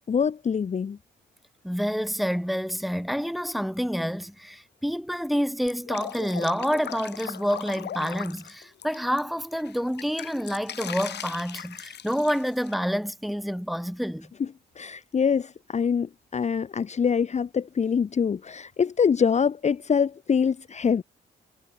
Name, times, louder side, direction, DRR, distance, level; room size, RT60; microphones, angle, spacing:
voice 1, 0.1-1.0 14.4-14.5 14.8-21.0, left 6 dB, 35° left, 0.9 m, -24 dB
voice 2, 1.6-14.3, equal, ahead, 2.9 m, -28 dB
Drip, 5.7-9.2 9.6-12.7, left 9 dB, 60° left, 2.2 m, -39 dB
cardioid pair, 90°, 20 cm